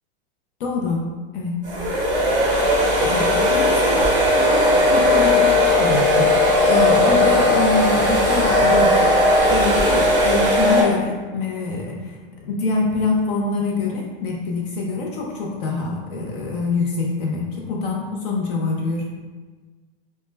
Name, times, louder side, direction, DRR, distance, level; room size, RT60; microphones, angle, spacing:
voice 1, 0.6-1.1 1.3-1.6 3.0-9.2 9.5-12.2 12.4-19.1, left 3 dB, 60° left, -1 dB, 0.5 m, -25 dB
sound 1, 1.6-10.8, left 1 dB, 15° right, 0.5 m, -17 dB
2.1 x 2.1 x 3.2 m, 1.4 s
supercardioid pair, 150°, 30 cm